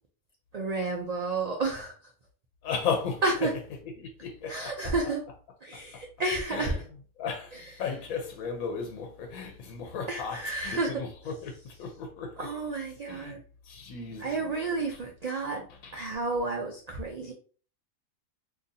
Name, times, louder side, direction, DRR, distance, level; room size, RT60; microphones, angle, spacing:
voice 1, 0.5-1.9 3.2-3.5 4.5-5.2 5.6-6.8 7.5-7.6 10.1-10.9 12.4-13.4 14.2-17.3, right 3 dB, 85° right, 0.3 m, -31 dB
voice 2, 2.6-3.5 4.0-4.9 6.5-6.8 7.2-11.5 11.8-12.6 13.1-13.3 13.6-14.5 15.8-16.0, left 5 dB, 85° left, 1.1 m, -35 dB
3.8 x 2.7 x 2.6 m
omnidirectional pair, 1.4 m